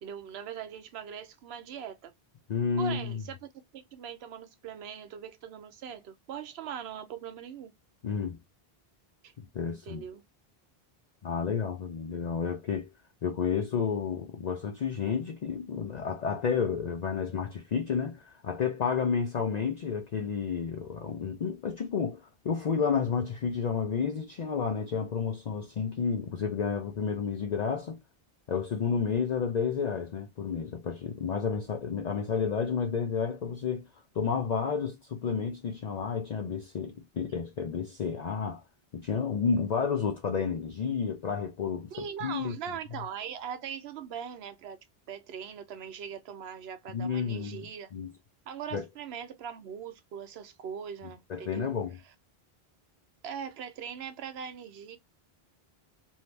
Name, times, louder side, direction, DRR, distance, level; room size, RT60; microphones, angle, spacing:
voice 1, 0.0-2.1 2.8-3.4 3.7-7.7 9.2-9.3 9.7-10.2 41.9-47.9 48.5-51.8 53.2-55.0, right 8 dB, 80° right, 0.9 m, -41 dB
voice 2, 2.5-3.2 8.0-8.4 9.5-10.0 11.2-12.9 13.2-28.0 28.5-33.9 34.1-38.6 38.9-42.5 46.9-48.1 48.7-48.8 51.3-52.0, left 6 dB, 50° left, 0.6 m, -31 dB
2.7 x 2.7 x 3.2 m
omnidirectional pair, 1.0 m